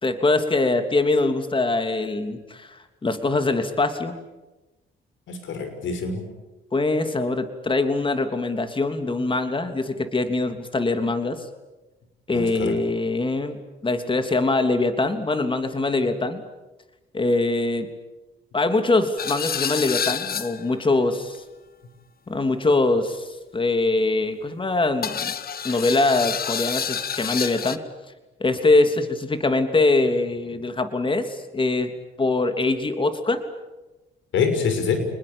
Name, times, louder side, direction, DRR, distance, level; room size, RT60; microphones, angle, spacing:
voice 1, 0.0-4.2 6.7-11.4 12.3-16.4 17.1-17.9 18.5-21.4 22.3-25.3 25.6-27.8 28.4-31.9 32.2-33.4, left 2 dB, 25° left, 8 dB, 3.1 m, -23 dB
voice 2, 5.3-6.2 12.3-12.7 34.3-35.0, left 5 dB, 75° left, 7 dB, 6.4 m, -25 dB
sound 1, 19.2-20.8 25.0-27.8, left 8 dB, 50° left, 1.4 m, -28 dB
29.0 x 20.5 x 8.9 m, 1.1 s
cardioid pair, 90°, 20 cm